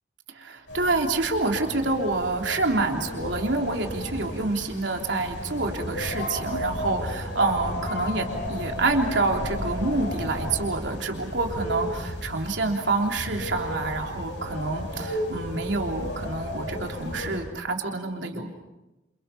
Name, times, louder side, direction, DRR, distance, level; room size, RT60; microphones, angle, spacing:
voice 1, 0.3-18.5, right 3 dB, 85° right, 2 dB, 3.3 m, -27 dB
sound 1, 0.7-17.4, equal, 75° left, 7.9 m, -34 dB
29.0 x 28.0 x 5.7 m, 0.98 s
head